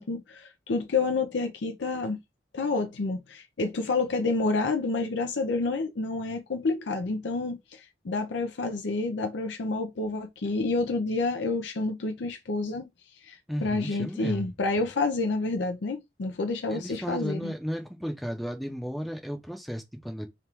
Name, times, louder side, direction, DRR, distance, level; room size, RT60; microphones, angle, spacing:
voice 1, 0.0-2.2 2.5-12.9 13.2-17.5, left 3 dB, 90° left, 0.5 m, -29 dB
voice 2, 13.5-14.5 16.7-20.3, equal, ahead, 0.6 m, -34 dB
3.5 x 2.4 x 4.4 m
head